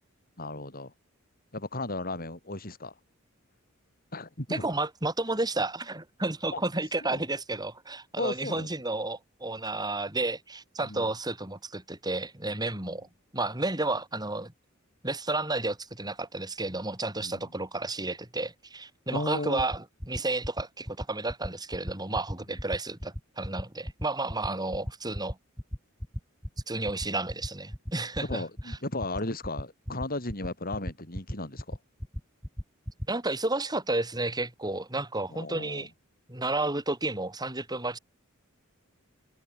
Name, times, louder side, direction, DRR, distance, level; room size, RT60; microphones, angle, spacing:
voice 1, 0.4-0.9 1.5-2.9 4.1-4.7 6.5-6.6 7.0-7.2 8.2-8.7 10.8-11.1 17.1-17.5 19.1-19.7 28.2-31.8 35.3-35.9, left 2 dB, 45° left, 6.4 m, -35 dB
voice 2, 4.5-13.1 13.3-14.5 15.0-25.4 26.7-28.8 33.1-35.9 36.3-38.0, right 2 dB, 20° right, 5.9 m, -32 dB
sound 1, 19.6-33.1, equal, 5° left, 2.4 m, -35 dB
head